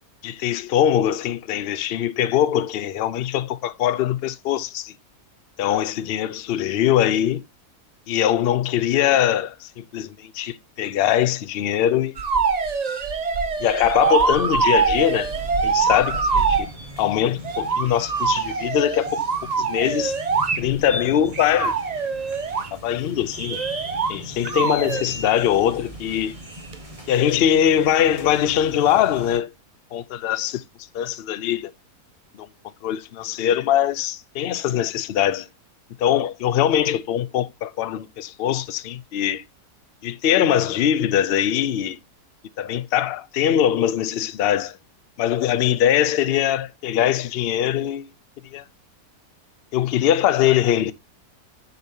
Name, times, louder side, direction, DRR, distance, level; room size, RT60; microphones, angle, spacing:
voice 1, 0.2-4.9 5.6-7.4 8.1-12.2 13.6-15.3 15.6-16.7 17.0-19.3 19.6-20.2 20.6-21.8 22.7-23.6 24.1-26.4 27.1-29.5 29.9-30.6 30.9-31.7 32.4-32.5 32.8-35.5 36.0-39.4 40.0-42.0 42.6-44.8 45.2-48.1 48.5-48.6 49.7-50.9, left 10 dB, 75° left, 0.5 m, -22 dB
sound 1, 12.2-16.7 17.4-20.9 21.3-22.7 23.5-24.2 24.5-25.0 26.7-26.8, right 5 dB, 55° right, 0.4 m, -23 dB
sound 2, 14.9-29.4, equal, 20° right, 1.5 m, -38 dB
6.9 x 5.0 x 2.8 m
omnidirectional pair, 1.7 m